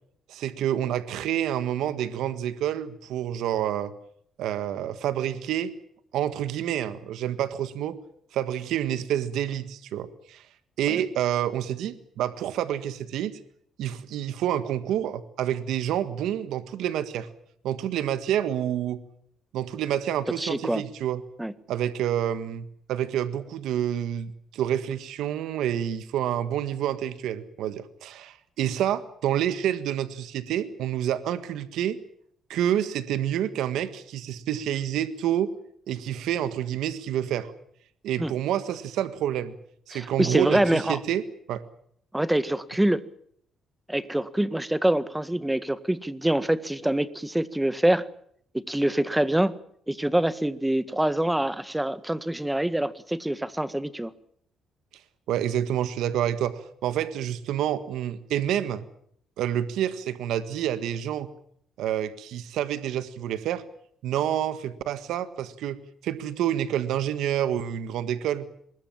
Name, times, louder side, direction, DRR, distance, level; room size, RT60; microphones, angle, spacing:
voice 1, 0.3-3.9 4.4-5.7 6.1-8.0 8.3-10.5 10.8-13.4 13.8-17.3 17.6-19.0 19.5-21.2 21.7-32.0 32.5-35.5 35.9-37.5 38.0-39.6 39.9-41.2 41.5-41.6 55.3-58.8 59.4-61.3 61.8-63.6 64.0-68.4, right 10 dB, 85° right, 13 dB, 1.6 m, -28 dB
voice 2, 20.4-20.8 21.4-21.5 38.2-38.3 39.9-41.0 42.1-43.0 43.9-48.1 48.5-49.6 49.9-54.1, right 1 dB, 10° right, 14 dB, 1.7 m, -25 dB
23.5 x 21.5 x 7.4 m, 0.66 s
cardioid pair, 90°, 0 cm